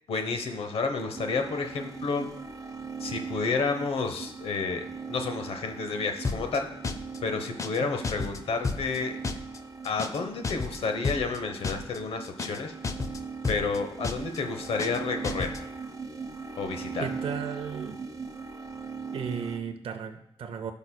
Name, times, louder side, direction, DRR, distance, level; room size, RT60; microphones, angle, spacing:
voice 1, 0.1-2.3 3.0-6.7 7.2-9.2 9.8-12.7 13.5-15.5 16.6-17.1, left 4 dB, 85° left, 5 dB, 0.9 m, -30 dB
sound 1, 1.1-19.6, right 5 dB, 35° right, 0.8 m, -40 dB
sound 2, 6.2-6.6 6.8-7.2 7.4-7.8 8.0-8.4 8.6-9.0 9.2-9.6 9.8-10.2 10.4-10.8 11.0-11.4 11.6-12.0 12.2-12.6 12.8-13.2 13.4-13.8 14.0-14.4 14.6-15.0 15.2-15.6, left 4 dB, 35° left, 0.5 m, -31 dB
voice 2, 17.0-18.0 19.1-20.7, right 7 dB, 80° right, 6 dB, 0.5 m, -35 dB
15.5 x 5.3 x 2.2 m, 0.80 s
wide cardioid pair, 125°, 10 cm